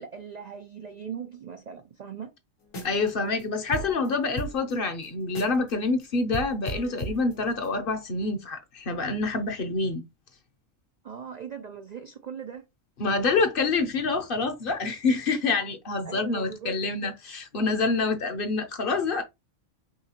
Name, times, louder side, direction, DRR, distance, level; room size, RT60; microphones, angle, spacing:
voice 1, 0.0-2.3 11.0-12.6 16.0-16.8, right 7 dB, 85° right, 0.3 m, -39 dB
sound 1, 2.6-3.1 3.4-3.5 3.7-5.7 6.0-6.1 6.3-7.8, right 1 dB, 85° left, 1.9 m, -36 dB
voice 2, 2.8-10.0 13.0-19.2, left 3 dB, 50° left, 0.8 m, -27 dB
5.5 x 2.8 x 2.9 m
omnidirectional pair, 1.4 m